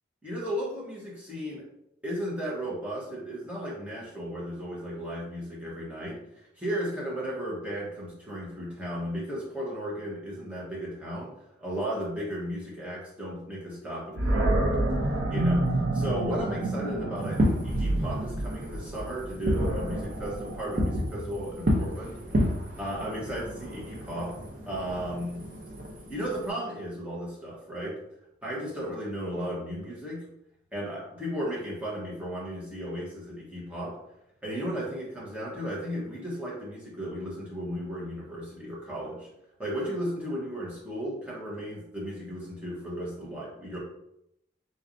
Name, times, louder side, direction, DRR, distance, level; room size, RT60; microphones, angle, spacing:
voice 1, 0.2-1.6 2.0-6.2 6.6-11.3 11.6-14.8 15.3-15.7 15.9-22.2 22.8-24.4 24.7-25.4 26.1-28.0 28.4-30.2 30.7-34.0 34.4-39.3 39.6-43.8, equal, 5° right, -7 dB, 1.1 m, -35 dB
Animal, 14.2-21.3, right 1 dB, 80° right, 0.6 m, -29 dB
Fireworks, 17.2-26.5, equal, 45° right, 0.7 m, -31 dB
3.9 x 3.3 x 2.7 m, 0.81 s
head